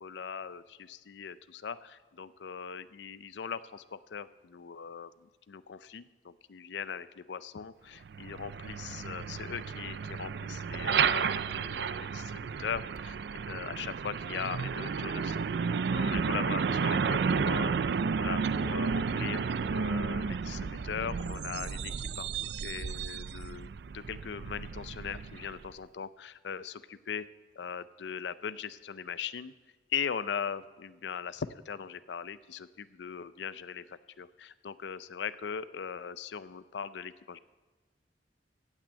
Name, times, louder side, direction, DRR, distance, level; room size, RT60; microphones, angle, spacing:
voice 1, 0.0-13.2 13.5-17.7 18.2-23.7 23.9-27.3 27.6-29.5 29.9-37.4, left 7 dB, 75° left, 16 dB, 0.5 m, -40 dB
Truck, 8.0-25.7, right 6 dB, 65° right, 0.4 m, -32 dB
15.0 x 6.1 x 8.9 m, 1.3 s
head